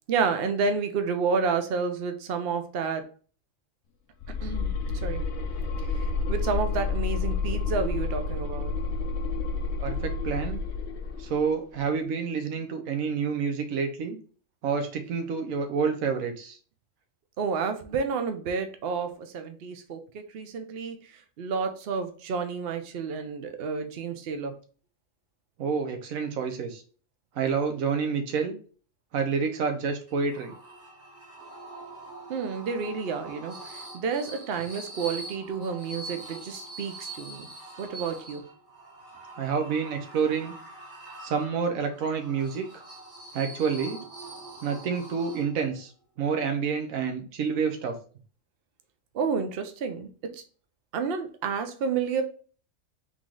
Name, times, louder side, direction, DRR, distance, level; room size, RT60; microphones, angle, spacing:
voice 1, 0.1-3.1 4.4-5.2 5.9-8.7 17.4-21.0 21.4-24.5 32.3-37.5 37.8-38.4 49.1-50.4 50.9-52.2, right 5 dB, 55° right, 7 dB, 0.8 m, -30 dB
sound 1, 4.2-11.4, left 4 dB, 65° left, 0.8 m, -30 dB
voice 2, 9.8-10.6 11.2-14.2 14.6-16.6 25.6-26.8 27.3-28.5 29.1-30.5 39.4-40.5 41.2-42.8 43.3-44.0 44.6-45.9 46.2-47.9, right 6 dB, 85° right, 5 dB, 1.2 m, -28 dB
sound 2, 30.1-45.8, right 2 dB, 40° right, 1.3 m, -44 dB
3.9 x 3.1 x 3.7 m, 0.39 s
omnidirectional pair, 1.4 m